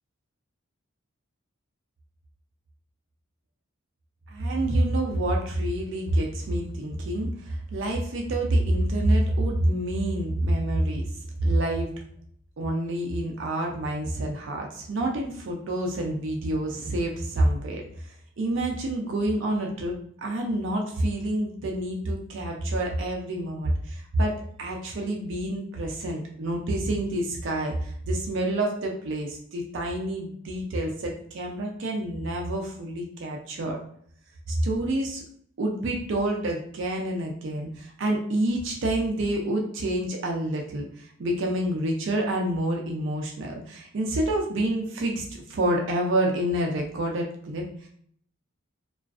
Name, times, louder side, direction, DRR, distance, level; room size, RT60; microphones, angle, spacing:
voice 1, 4.3-11.1 11.4-11.9 12.6-33.8 34.5-35.2 35.6-47.9, right 1 dB, 55° right, 0 dB, 0.4 m, -27 dB
2.4 x 2.3 x 2.3 m, 0.63 s
head